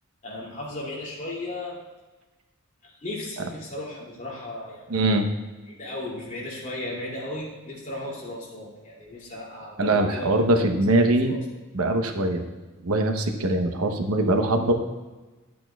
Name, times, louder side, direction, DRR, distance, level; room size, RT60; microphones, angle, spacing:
voice 1, 0.2-1.8 2.8-5.1 5.7-10.3 10.7-10.8 11.2-11.4 12.1-12.2, left 1 dB, 35° left, -4 dB, 2.5 m, -36 dB
voice 2, 4.9-5.3 9.8-11.3 11.7-12.4 12.8-14.7, right 2 dB, 80° right, 4 dB, 0.9 m, -22 dB
11.0 x 8.5 x 2.3 m, 1.2 s
head